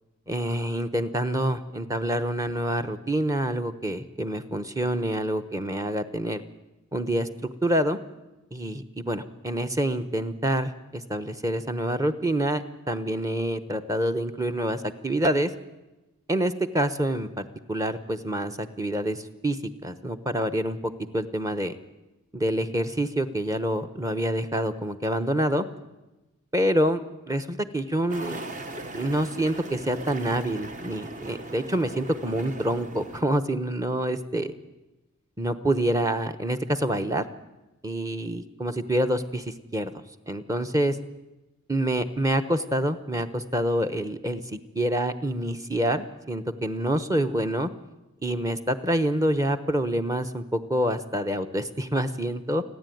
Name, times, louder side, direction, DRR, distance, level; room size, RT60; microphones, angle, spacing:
voice 1, 0.3-6.4 6.9-8.0 8.5-15.5 16.3-19.6 19.8-21.7 22.3-25.6 26.5-28.5 28.9-34.5 35.4-37.2 37.8-39.4 39.7-39.9 40.3-41.0 41.7-47.7 48.2-52.6, right 1 dB, 15° right, 8 dB, 0.9 m, -27 dB
sound 1, 28.1-33.2, right 2 dB, 35° right, 1.2 m, -39 dB
28.5 x 10.5 x 9.3 m, 1.1 s
head